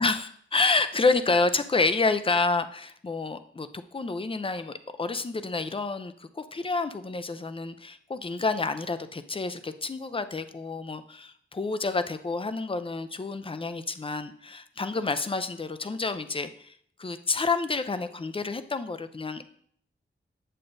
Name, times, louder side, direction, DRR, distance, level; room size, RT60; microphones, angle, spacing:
voice 1, 0.0-3.7 3.9-16.7 17.0-19.4, left 3 dB, 25° left, 11 dB, 0.5 m, -29 dB
8.8 x 7.4 x 2.6 m, 0.62 s
wide cardioid pair, 75°, 20 cm